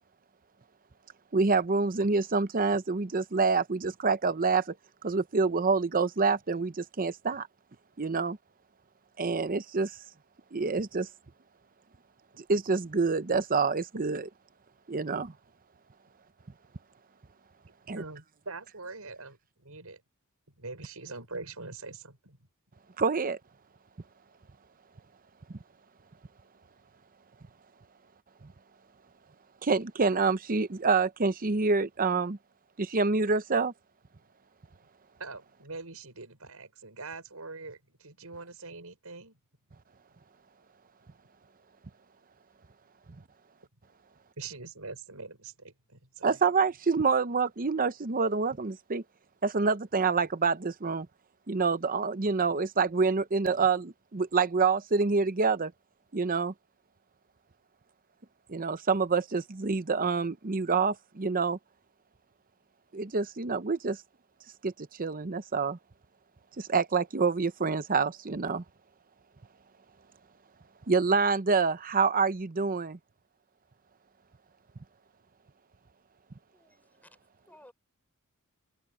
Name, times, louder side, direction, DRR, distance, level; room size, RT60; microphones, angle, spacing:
voice 1, 1.3-4.7 5.0-7.5 8.0-8.4 9.2-10.0 10.5-11.1 12.4-14.2 14.9-15.3 17.9-18.0 23.0-23.4 29.6-32.4 32.8-33.7 46.2-49.0 49.4-51.1 51.5-55.7 56.1-56.5 58.5-61.6 62.9-64.0 64.6-64.7 65.0-65.8 66.6-68.6 70.9-73.0, right 4 dB, 40° right, 0.8 m, -27 dB
voice 2, 17.9-20.0 20.6-22.4 35.2-39.4 44.4-46.4, right 3 dB, 85° right, 5.9 m, -43 dB
voice 3, 76.5-77.7, left 1 dB, 10° left, 5.9 m, -58 dB
head